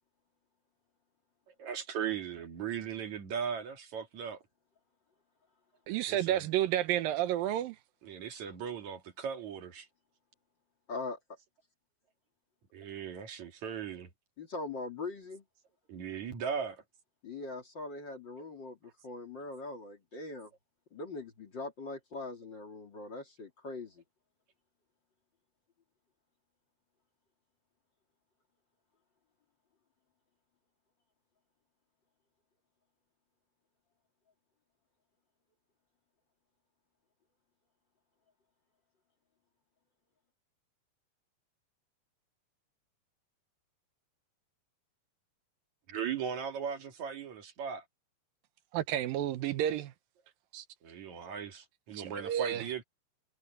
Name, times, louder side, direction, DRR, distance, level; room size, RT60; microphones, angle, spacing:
voice 1, 1.6-4.4 6.1-6.5 8.0-9.9 12.7-14.1 15.9-16.8 45.9-47.8 50.8-52.8, right 7 dB, 60° right, 3.3 m, -38 dB
voice 2, 5.9-7.8 48.7-49.9 50.5-50.6 51.9-52.6, right 12 dB, 85° right, 2.7 m, -31 dB
voice 3, 10.9-11.2 14.4-15.4 17.2-20.5 20.9-24.0, left 3 dB, 35° left, 2.8 m, -41 dB
omnidirectional pair, 4.0 m